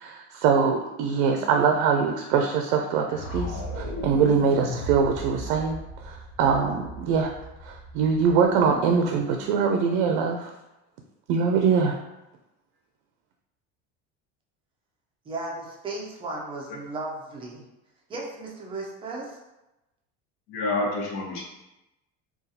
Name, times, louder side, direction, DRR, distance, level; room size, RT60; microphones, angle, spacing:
voice 1, 0.0-7.3 7.6-10.5 11.3-12.0, right 6 dB, 80° right, 3 dB, 0.5 m, -23 dB
sound 1, 3.1-9.2, left 1 dB, 50° left, 0.6 m, -37 dB
voice 2, 15.3-17.6 18.1-19.4, right 2 dB, 15° right, -2 dB, 0.3 m, -35 dB
voice 3, 20.5-21.4, left 2 dB, 80° left, -3 dB, 1.0 m, -28 dB
3.9 x 2.4 x 2.7 m, 0.96 s
cardioid pair, 165°, 34 cm